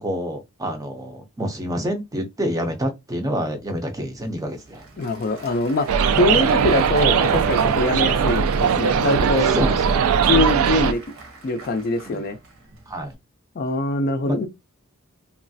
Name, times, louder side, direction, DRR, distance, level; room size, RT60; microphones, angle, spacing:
voice 1, 0.0-4.8 9.5-9.9 12.1-12.2 12.9-13.1 14.3-14.5, equal, 15° right, 0.5 m, -27 dB
Applause / Crowd, 3.6-13.1, right 3 dB, 65° right, 0.8 m, -43 dB
voice 2, 5.0-9.6 10.2-11.0 11.4-12.4 13.6-14.5, left 2 dB, 45° left, 0.4 m, -23 dB
sound 1, 5.9-10.9, right 7 dB, 80° right, 0.3 m, -19 dB
3.0 x 2.4 x 2.6 m
head